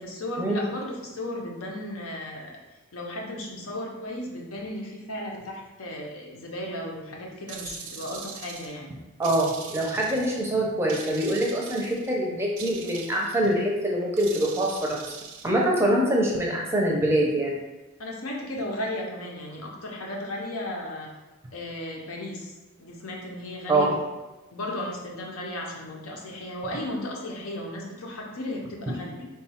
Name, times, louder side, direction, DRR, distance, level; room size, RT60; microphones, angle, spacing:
voice 1, 0.0-2.6 2.9-8.9 18.0-21.1 21.5-22.5 22.8-24.0 24.5-29.3, left 1 dB, 85° left, -1 dB, 0.7 m, -35 dB
sound 1, 7.5-8.8 9.2-10.5 10.9-12.1 12.6-13.5 14.2-15.5, right 6 dB, 85° right, 0.5 m, -41 dB
voice 2, 9.2-15.0 15.4-17.6 23.7-23.9, right 1 dB, 10° right, -2 dB, 0.5 m, -24 dB
3.6 x 2.3 x 4.2 m, 1.1 s
head